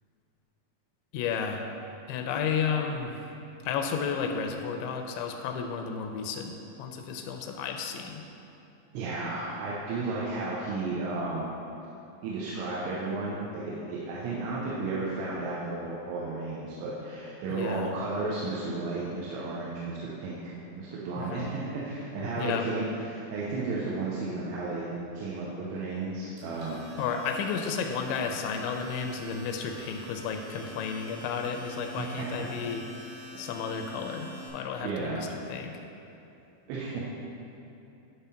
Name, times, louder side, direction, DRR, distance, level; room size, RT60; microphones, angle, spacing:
voice 1, 1.1-1.7 2.1-3.2 3.6-8.2 17.5-17.9 21.2-21.5 22.4-22.7 27.0-35.8, left 6 dB, 85° left, 4 dB, 2.8 m, -32 dB
voice 2, 8.9-11.5 12.2-24.9 25.1-26.8 31.9-32.0 34.8-35.3 36.7-37.1, right 3 dB, 85° right, -7 dB, 3.2 m, -33 dB
Domestic sounds home sounds, 26.5-34.5, left 1 dB, 70° right, 4.3 m, -46 dB
11.0 x 3.7 x 5.6 m, 2.9 s
omnidirectional pair, 5.3 m